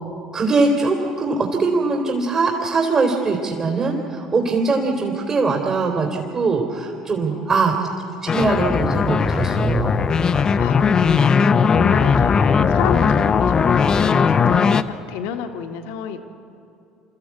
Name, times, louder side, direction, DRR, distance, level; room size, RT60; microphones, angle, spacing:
voice 1, 0.3-7.7 8.3-9.9, right 3 dB, 35° right, 0 dB, 3.3 m, -21 dB
voice 2, 7.3-8.5 10.6-16.2, left 7 dB, 65° left, 6 dB, 1.6 m, -32 dB
sound 1, 8.3-14.8, left 6 dB, 35° left, 0.9 m, -18 dB
28.0 x 14.0 x 8.4 m, 2.6 s
figure-of-eight pair, 60°, 2 cm